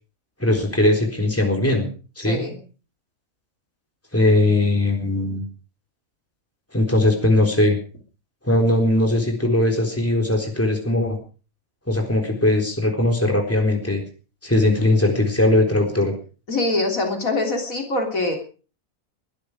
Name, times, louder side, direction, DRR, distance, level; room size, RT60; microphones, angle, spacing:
voice 1, 0.4-1.9 2.2-2.4 4.1-5.4 6.7-7.8 8.4-11.2 11.9-14.0 14.4-16.1, left 1 dB, 10° left, 2 dB, 4.0 m, -19 dB
voice 2, 2.2-2.6 16.5-18.4, left 2 dB, 70° left, 3 dB, 3.8 m, -24 dB
22.0 x 12.0 x 5.0 m, 0.39 s
omnidirectional pair, 1.5 m